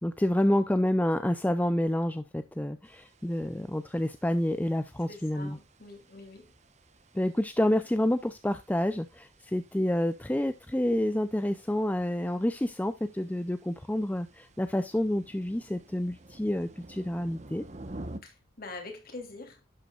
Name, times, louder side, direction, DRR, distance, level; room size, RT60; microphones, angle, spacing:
voice 1, 0.0-5.6 7.1-17.6, left 1 dB, 10° left, 0.4 m, -28 dB
sound 1, 2.8-18.2, right 1 dB, 35° right, 1.0 m, -51 dB
voice 2, 5.1-6.5 18.2-19.6, left 3 dB, 45° left, 3.0 m, -44 dB
11.5 x 8.2 x 2.4 m
head